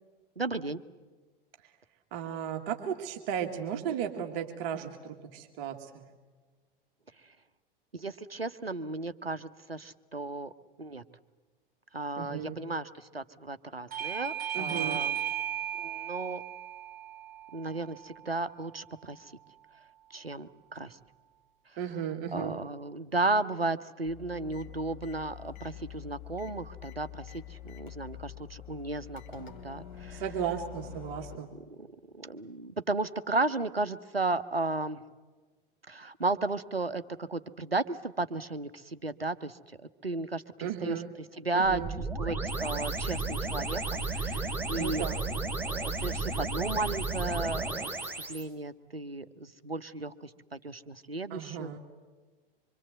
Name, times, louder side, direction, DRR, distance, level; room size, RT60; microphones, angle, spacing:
voice 1, 0.4-0.8 7.9-10.5 10.8-11.0 11.9-15.2 15.8-16.4 17.5-19.3 20.1-21.0 22.3-30.2 31.8-31.9 32.1-35.0 35.9-39.6 40.0-41.0 41.4-41.8 42.2-45.0 45.6-51.8, right 2 dB, 90° right, 13 dB, 1.0 m, -34 dB
voice 2, 2.1-6.0 12.2-12.6 14.5-15.0 21.8-22.6 30.1-31.5 40.6-41.1 41.5-41.9 44.7-45.2 51.3-51.8, right 8 dB, 45° right, 5 dB, 2.1 m, -35 dB
Bell / Doorbell, 13.9-19.1, right 10 dB, 30° right, 2.2 m, -36 dB
sound 1, 24.0-31.4, left 11 dB, 55° left, 3.2 m, -46 dB
sound 2, 41.6-48.4, right 3 dB, 5° right, 3.6 m, -33 dB
25.5 x 25.0 x 8.0 m, 1.3 s
figure-of-eight pair, 85°, 29 cm